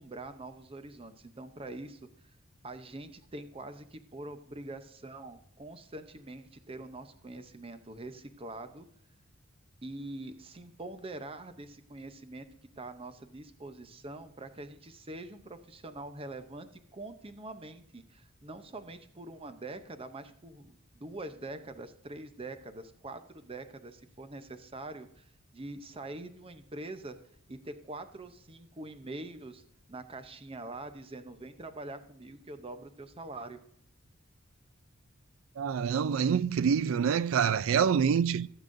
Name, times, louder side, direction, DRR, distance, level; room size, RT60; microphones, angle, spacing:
voice 1, 0.0-2.0 2.6-8.9 9.8-12.5 12.8-27.2 27.5-29.6 29.9-33.6, right 2 dB, 25° right, 0.7 m, -44 dB
voice 2, 35.6-38.5, right 7 dB, 75° right, 0.3 m, -26 dB
15.5 x 8.1 x 2.6 m
head